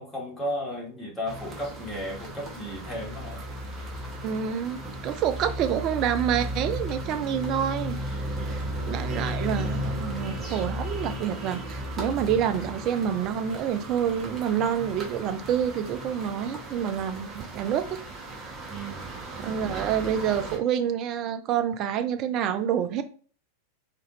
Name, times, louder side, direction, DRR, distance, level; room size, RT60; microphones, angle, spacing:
voice 1, 0.0-3.4 8.3-8.7 18.7-19.8, equal, 10° left, 1.5 m, -35 dB
sound 1, 1.3-20.6, equal, 20° right, 1.1 m, -35 dB
voice 2, 4.2-17.9 19.4-23.0, right 9 dB, 35° right, 0.4 m, -28 dB
3.9 x 2.5 x 3.1 m
figure-of-eight pair, 90°, 0 cm